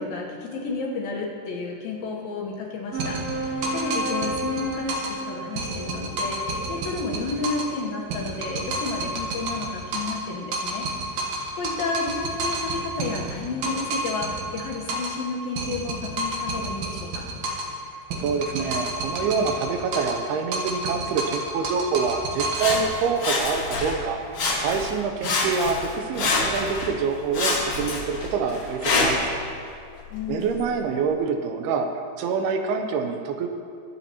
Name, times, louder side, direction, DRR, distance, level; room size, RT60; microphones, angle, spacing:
voice 1, 0.0-11.2 11.6-17.3 30.1-30.5, left 4 dB, 70° left, -1 dB, 2.7 m, -32 dB
sound 1, 2.9-7.7, right 3 dB, 45° right, 1.2 m, -34 dB
sound 2, 3.0-5.2 5.6-7.8 8.1-10.3 10.5-15.2 15.6-17.8 18.1-20.3 20.5-22.8, right 1 dB, 65° right, 2.1 m, -30 dB
voice 2, 18.2-24.2 24.6-29.4 30.3-31.9 32.2-33.5, right 5 dB, 85° right, 5 dB, 2.6 m, -26 dB
Sawing, 22.5-24.0 24.3-24.9 25.2-26.9 27.3-29.3 30.0-30.1, left 3 dB, 50° left, 2.4 m, -26 dB
22.0 x 8.6 x 2.9 m, 2.3 s
omnidirectional pair, 4.7 m